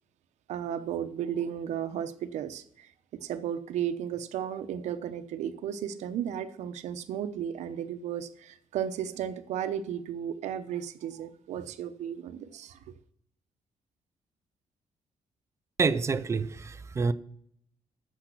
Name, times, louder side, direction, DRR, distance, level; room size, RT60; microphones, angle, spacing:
voice 1, 0.5-12.8, right 9 dB, 85° right, 0.9 m, -34 dB
voice 2, 15.8-17.1, right 4 dB, 25° right, 0.5 m, -27 dB
10.0 x 7.4 x 6.1 m
cardioid pair, 155°, 12 cm